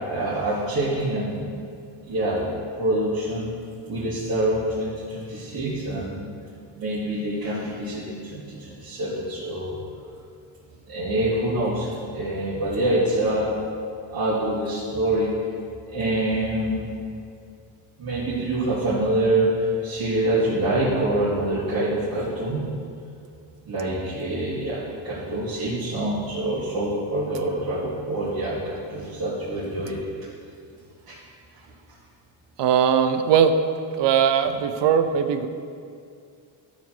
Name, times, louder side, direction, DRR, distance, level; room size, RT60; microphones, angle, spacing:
voice 1, 0.1-1.5 2.0-2.5 2.8-3.5 3.9-6.3 6.7-9.8 10.9-13.5 14.1-15.3 15.9-16.9 18.0-22.6 23.6-30.0 31.1-31.2, right 1 dB, 50° right, -10 dB, 2.9 m, -25 dB
voice 2, 32.6-33.6 34.0-35.5, right 7 dB, 65° right, 9 dB, 0.8 m, -19 dB
12.5 x 5.2 x 6.2 m, 2.3 s
cardioid pair, 110°, 46 cm